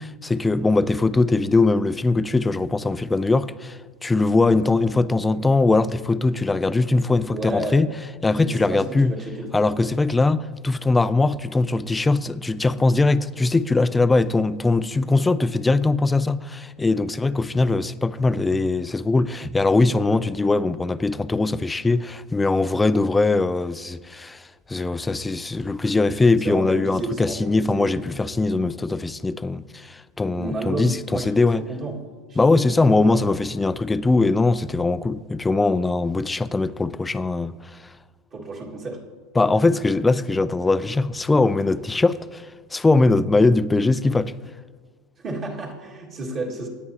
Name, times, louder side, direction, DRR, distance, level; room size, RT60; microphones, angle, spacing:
voice 1, 0.0-7.9 8.2-9.1 9.5-31.7 32.4-37.8 39.4-44.3, left 3 dB, 10° left, 0.4 m, -21 dB
voice 2, 7.3-7.8 8.4-9.9 26.4-27.9 30.3-32.0 32.3-32.4 32.8-33.2 38.3-39.0 45.2-46.7, right 2 dB, 40° right, 1.9 m, -31 dB
18.0 x 10.0 x 2.8 m
supercardioid pair, 115°, 0 cm